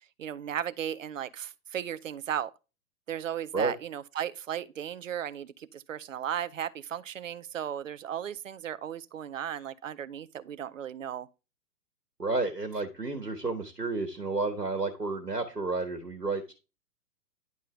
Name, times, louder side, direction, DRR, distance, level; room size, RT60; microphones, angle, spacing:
voice 1, 0.2-2.5 3.1-11.3, right 9 dB, 55° right, 0.7 m, -35 dB
voice 2, 12.2-16.5, right 3 dB, 90° right, 1.5 m, -31 dB
10.5 x 5.6 x 3.3 m
figure-of-eight pair, 120°, 47 cm